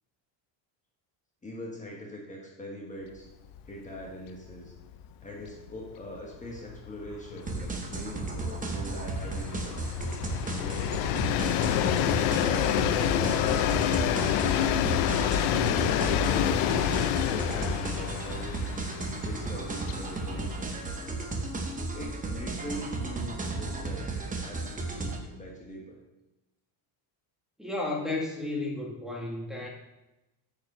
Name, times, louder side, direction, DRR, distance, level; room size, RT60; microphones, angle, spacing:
voice 1, 1.4-3.3 3.6-4.7 5.2-9.9 10.5-11.3 12.4-14.6 15.5-16.6 17.3-18.6 19.2-20.7 21.9-26.0, left 1 dB, 15° left, -2 dB, 1.3 m, -41 dB
Train, 3.5-3.7 4.0-4.1 4.4-21.8, left 10 dB, 90° left, 0.7 m, -29 dB
sound 1, 7.5-25.2, right 3 dB, 15° right, 0.9 m, -34 dB
voice 2, 27.6-29.7, left 2 dB, ahead, -1 dB, 1.6 m, -33 dB
8.8 x 4.9 x 5.4 m, 0.99 s
cardioid pair, 145°, 48 cm